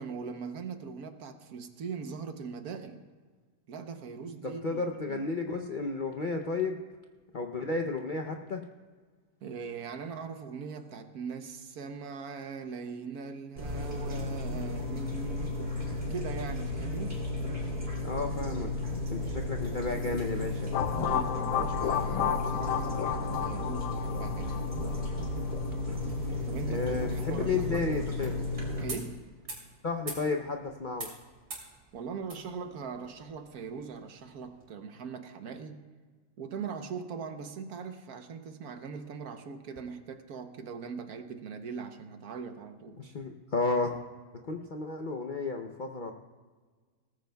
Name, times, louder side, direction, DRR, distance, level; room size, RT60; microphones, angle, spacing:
voice 1, 0.0-3.0 3.7-4.8 5.1-5.3 9.4-15.6 16.1-17.2 20.9-24.6 26.5-27.8 28.8-29.2 31.9-35.9 36.4-43.0, right 5 dB, 65° right, 7 dB, 1.2 m, -40 dB
voice 2, 4.4-6.8 7.3-8.6 18.0-20.7 26.6-28.5 29.8-31.1 43.0-44.0 44.5-46.1, left 3 dB, 85° left, 4 dB, 0.4 m, -32 dB
sound 1, 13.6-28.8, left 2 dB, 35° right, 3.2 m, -34 dB
sound 2, 17.8-34.7, right 3 dB, 80° right, 3.5 m, -50 dB
sound 3, 20.7-25.5, left 10 dB, 70° left, 0.9 m, -32 dB
19.0 x 14.5 x 2.3 m, 1.5 s
omnidirectional pair, 1.9 m